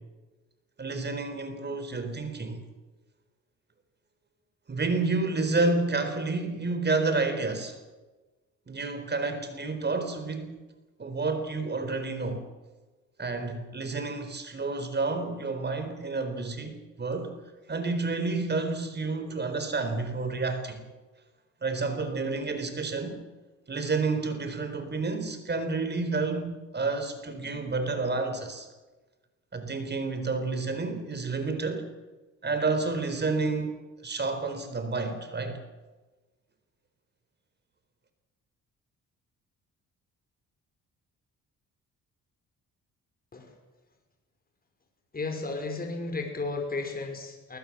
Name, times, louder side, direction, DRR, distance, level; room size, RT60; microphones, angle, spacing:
voice 1, 0.8-2.6 4.7-7.8 8.7-10.6 11.0-12.4 13.2-17.4 17.7-20.8 21.6-23.2 23.7-28.7 29.5-31.9 32.4-35.6, right 3 dB, 35° right, 4.2 m, -30 dB
voice 2, 45.1-47.6, left 3 dB, 30° left, 5.4 m, -33 dB
22.0 x 19.0 x 7.4 m
cardioid pair, 90°, 30 cm